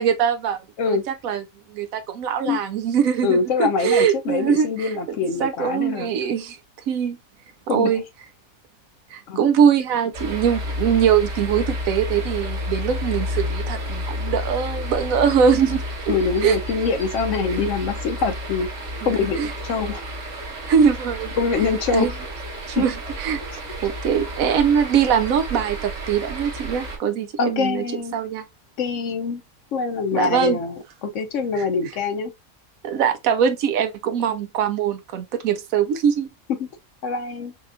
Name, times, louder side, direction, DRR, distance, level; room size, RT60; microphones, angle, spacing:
voice 1, 0.0-6.6 6.9-7.2 7.7-8.0 9.1-16.1 16.4-16.6 19.0-19.5 20.7-21.3 21.9-22.1 22.7-23.4 23.8-27.8 28.1-28.4 30.1-30.6 31.6-31.7 32.8-36.3, right 7 dB, 80° right, 1.0 m, -22 dB
voice 2, 3.2-6.1 7.7-7.9 9.3-9.4 16.1-18.7 19.0-20.0 21.4-22.1 22.8-22.9 27.4-28.1 28.8-29.4 29.7-32.3 37.0-37.5, left 5 dB, 65° left, 1.0 m, -24 dB
sound 1, 10.1-27.0, left 1 dB, 60° right, 1.9 m, -31 dB
5.7 x 2.3 x 2.6 m
omnidirectional pair, 1.5 m